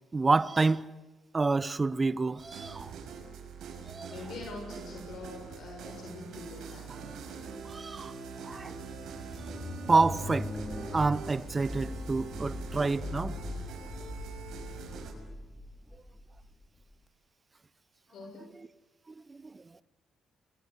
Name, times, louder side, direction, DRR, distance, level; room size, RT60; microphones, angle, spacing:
voice 1, 0.1-0.8 1.3-2.9 3.9-4.1 7.7-8.1 8.4-8.8 9.9-10.5 10.9-13.4 19.3-19.4, right 3 dB, 25° right, 0.8 m, -28 dB
sound 1, 2.4-15.1, right 5 dB, 75° right, 5.8 m, -43 dB
voice 2, 4.1-7.1 18.1-18.5, left 3 dB, 70° left, 6.3 m, -44 dB
sound 2, 8.6-16.9, left 2 dB, 15° left, 4.0 m, -40 dB
28.0 x 22.0 x 8.2 m
cardioid pair, 90°, 0 cm